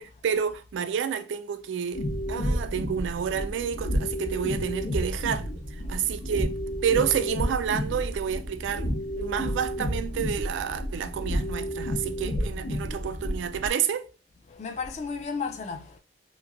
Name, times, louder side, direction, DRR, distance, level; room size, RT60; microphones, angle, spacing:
voice 1, 0.0-5.5 5.7-6.5 6.8-8.9 9.2-14.1, right 8 dB, 85° right, 0.3 m, -29 dB
sound 1, 1.9-13.7, equal, 80° left, 0.6 m, -31 dB
voice 2, 14.5-16.0, left 5 dB, 35° left, 0.3 m, -34 dB
2.9 x 2.5 x 2.4 m
head